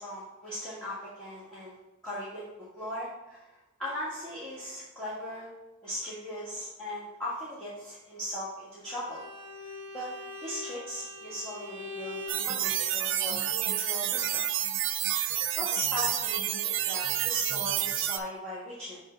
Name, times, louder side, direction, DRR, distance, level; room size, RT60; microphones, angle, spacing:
voice 1, 0.0-1.7 2.0-2.4 2.7-3.5 3.8-5.5 5.8-9.2 9.9-10.1 10.4-14.4 15.6-19.0, equal, 5° left, -12 dB, 1.5 m, -38 dB
Bowed string instrument, 8.8-12.5, left 2 dB, 20° left, 1.0 m, -42 dB
sound 1, 12.3-18.2, right 11 dB, 60° right, 0.4 m, -29 dB
6.3 x 3.4 x 5.5 m, 1.0 s
head